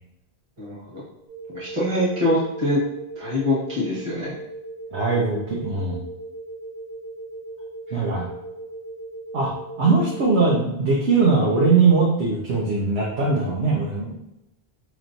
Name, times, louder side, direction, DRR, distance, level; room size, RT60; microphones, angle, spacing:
voice 1, 0.6-1.0 1.5-2.8 3.2-4.3 7.9-8.0, left 1 dB, 30° right, -8 dB, 1.4 m, -24 dB
sound 1, 1.3-10.2, right 2 dB, 50° right, 1.5 m, -38 dB
voice 2, 4.9-6.0 7.9-8.3 9.3-9.5 9.8-14.2, right 4 dB, 85° right, -4 dB, 1.1 m, -20 dB
4.5 x 3.1 x 2.6 m, 0.87 s
omnidirectional pair, 1.1 m